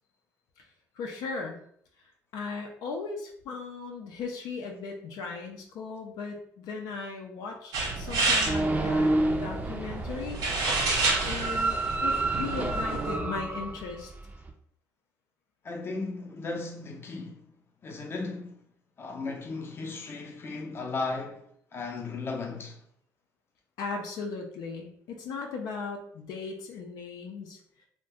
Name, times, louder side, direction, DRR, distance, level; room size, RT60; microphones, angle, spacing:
voice 1, 0.9-1.6 2.3-10.4 11.3-14.1 23.8-27.6, left 4 dB, 80° left, 0.5 m, -37 dB
sound 1, 7.7-13.2, right 3 dB, 85° right, 0.9 m, -30 dB
sound 2, 8.4-14.5, right 2 dB, 20° right, 0.4 m, -30 dB
voice 2, 15.6-17.5 17.8-18.6 19.0-21.4 21.7-22.8, left 3 dB, 35° left, 0.6 m, -36 dB
2.5 x 2.1 x 3.4 m
cardioid pair, 100°, 7 cm